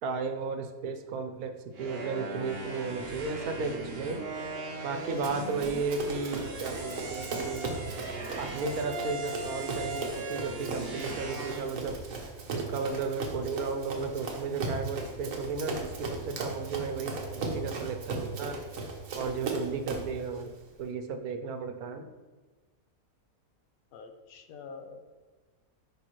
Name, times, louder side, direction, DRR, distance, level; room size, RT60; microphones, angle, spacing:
voice 1, 0.0-4.2 4.8-7.7 8.4-12.0 12.5-18.6 19.1-20.5 20.8-22.1, right 4 dB, 90° right, 7 dB, 1.2 m, -34 dB
sound 1, 1.7-11.6, right 2 dB, 50° right, 1.0 m, -39 dB
Run, 5.2-20.2, right 3 dB, 65° right, 1.3 m, -37 dB
voice 2, 23.9-25.2, left 4 dB, 75° left, 6 dB, 1.0 m, -46 dB
9.9 x 3.6 x 3.0 m, 1.3 s
omnidirectional pair, 1.5 m